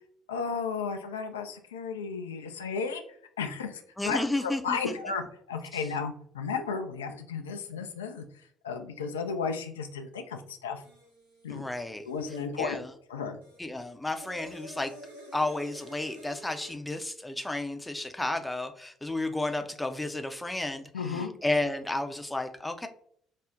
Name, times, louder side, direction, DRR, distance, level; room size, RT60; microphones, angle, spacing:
voice 1, 0.3-3.0 3.4-8.2 8.6-10.8 11.4-11.7 12.0-12.8 13.1-13.4 20.9-21.3, left 5 dB, 80° left, 6 dB, 0.3 m, -34 dB
voice 2, 4.0-4.9 11.5-12.0 12.6-12.9 13.6-14.9 15.3-22.9, left 2 dB, 10° left, 6 dB, 0.5 m, -32 dB
sound 1, 10.8-12.5 13.4-16.7, equal, 85° right, 0.8 m, -49 dB
5.1 x 2.0 x 2.5 m, 0.63 s
figure-of-eight pair, 50°, 0 cm